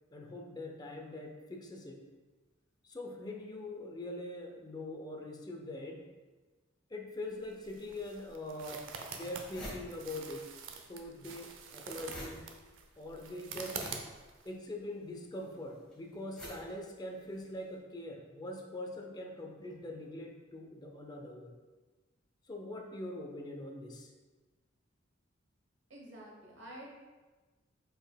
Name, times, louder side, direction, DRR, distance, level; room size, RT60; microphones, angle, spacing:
voice 1, 0.1-2.0 2.8-6.0 6.9-10.5 10.9-12.4 13.0-13.8 14.4-21.5 22.5-24.1, left 1 dB, 20° left, 1 dB, 0.5 m, -43 dB
sound 1, 7.3-14.5, right 5 dB, 85° right, 0.5 m, -46 dB
Grabbing tissues, 8.3-8.4 8.9-9.0 9.2-10.7 11.0-17.5, equal, 5° left, 1.4 m, -49 dB
voice 2, 25.9-26.9, right 1 dB, 65° right, -2 dB, 1.1 m, -49 dB
5.2 x 4.1 x 2.2 m, 1.3 s
head